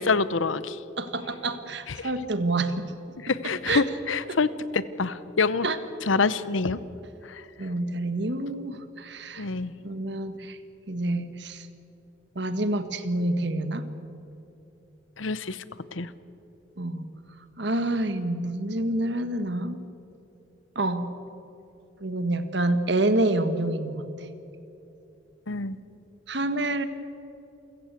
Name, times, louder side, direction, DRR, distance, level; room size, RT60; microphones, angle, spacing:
voice 1, 0.0-0.8 2.0-2.1 3.2-5.7 6.1-6.8 7.3-7.4 9.4-9.7 15.2-15.6 15.9-16.1 25.5-25.8, left 4 dB, 90° left, 16 dB, 0.9 m, -26 dB
voice 2, 1.0-2.9 3.4-3.8 4.3-4.4 5.6-5.8 7.6-9.5 9.8-10.6 10.9-11.7 12.3-13.9 16.8-17.1 17.6-19.8 20.7-21.0 22.0-24.3 26.3-26.8, right 2 dB, 65° right, 10 dB, 1.5 m, -27 dB
28.5 x 16.0 x 8.2 m, 2.9 s
head